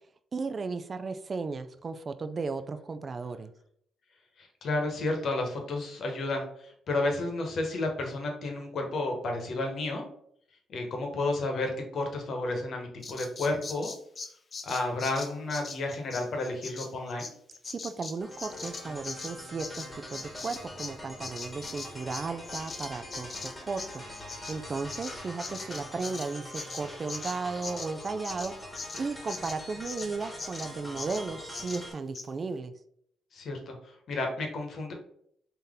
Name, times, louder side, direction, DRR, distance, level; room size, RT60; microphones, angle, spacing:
voice 1, 0.3-3.5 17.7-24.0 24.5-28.5 29.0-32.7, right 4 dB, 40° right, 9 dB, 0.3 m, -35 dB
voice 2, 4.4-10.0 10.7-13.9 14.6-17.3 33.3-34.9, left 2 dB, 60° left, 3 dB, 1.0 m, -32 dB
Bird vocalization bird call bird song, 13.0-21.0 21.2-30.1 30.4-30.7 31.0-31.2 31.5-31.8 32.1-32.3, left 4 dB, 40° left, 0.5 m, -41 dB
sound 1, 18.2-31.9, left 1 dB, 10° left, 1.4 m, -44 dB
3.8 x 2.7 x 3.5 m, 0.68 s
cardioid pair, 90°, 0 cm